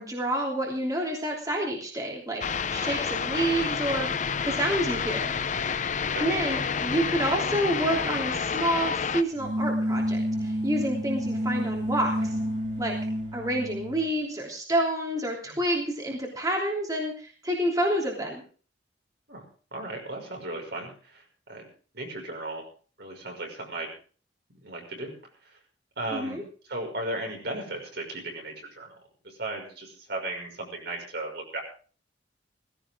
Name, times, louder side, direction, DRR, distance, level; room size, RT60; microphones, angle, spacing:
voice 1, 0.0-2.4 2.7-4.1 4.4-5.3 5.7-5.8 6.2-12.3 12.8-13.0 13.3-18.4 26.1-26.4, right 1 dB, 20° right, -1 dB, 3.2 m, -28 dB
sound 1, 2.4-9.2, left 6 dB, 40° left, 0.7 m, -29 dB
sound 2, 9.3-14.1, equal, 45° right, 5.1 m, -29 dB
voice 2, 19.7-21.7 21.9-22.6 23.0-23.9 24.6-25.1 25.4-25.6 26.0-28.9 29.2-31.6, right 2 dB, 60° right, 2 dB, 6.0 m, -36 dB
17.5 x 16.0 x 3.7 m, 0.40 s
head